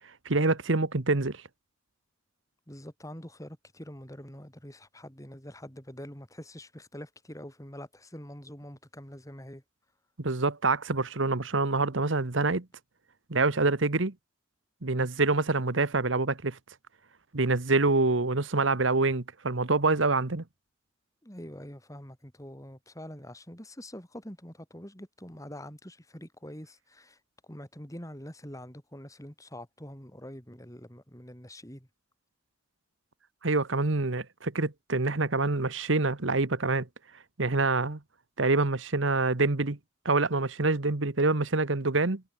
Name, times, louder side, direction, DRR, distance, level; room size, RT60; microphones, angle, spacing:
voice 1, 0.2-1.4 10.2-12.6 13.3-14.1 14.8-16.6 17.3-20.4 33.4-36.9 37.4-38.0 38.4-39.8 40.0-42.2, right 3 dB, 70° right, 1.4 m, -26 dB
voice 2, 2.7-9.6 21.2-27.2 27.5-31.9, equal, 15° left, 6.8 m, -45 dB
head